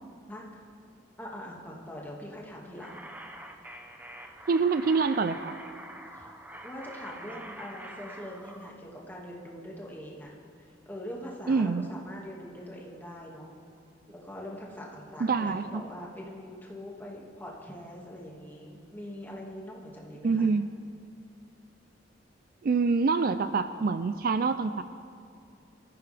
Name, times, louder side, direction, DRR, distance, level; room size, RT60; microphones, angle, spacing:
voice 1, 0.3-0.6 1.2-3.0 6.1-6.3 6.6-10.3 10.6-13.5 14.1-20.5, equal, 10° left, -3 dB, 2.0 m, -43 dB
sound 1, 2.8-8.7, right 1 dB, 10° right, 0.7 m, -45 dB
voice 2, 4.5-5.6 11.5-11.9 15.2-15.8 20.2-20.7 22.6-24.8, right 4 dB, 50° right, 11 dB, 0.4 m, -26 dB
23.0 x 14.5 x 3.4 m, 2.4 s
head